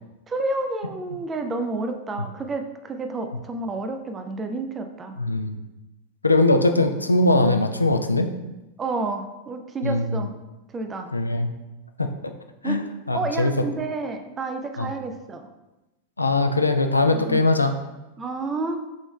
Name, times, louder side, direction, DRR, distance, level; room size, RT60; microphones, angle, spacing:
voice 1, 0.3-5.2 8.8-10.3 10.7-11.1 12.6-12.8 13.1-15.4 17.1-17.4 18.2-18.8, right 3 dB, 20° right, 6 dB, 0.4 m, -30 dB
voice 2, 5.2-5.6 6.2-8.3 9.8-10.3 11.1-11.5 12.0-12.3 12.6-12.8 13.1-13.6 14.8-14.9 16.2-17.7, left 2 dB, 80° left, 7 dB, 0.3 m, -21 dB
6.3 x 3.1 x 2.3 m, 1.0 s
figure-of-eight pair, 90°, 0 cm